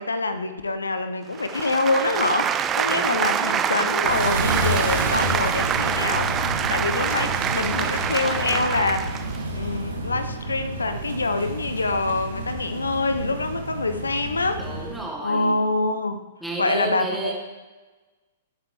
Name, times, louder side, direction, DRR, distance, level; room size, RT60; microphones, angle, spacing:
voice 1, 0.0-6.4 6.7-9.2 9.5-14.6 15.2-16.2 16.6-17.3, left 3 dB, 80° left, 10 dB, 0.8 m, -25 dB
sound 1, 1.3-9.4, right 8 dB, 20° right, 0.5 m, -25 dB
voice 2, 2.9-3.9 14.5-15.6 16.4-17.3, right 2 dB, ahead, -4 dB, 3.1 m, -32 dB
sound 2, 4.0-15.0, right 1 dB, 75° right, 2.2 m, -30 dB
18.5 x 7.4 x 3.5 m, 1.2 s
figure-of-eight pair, 110°, 0 cm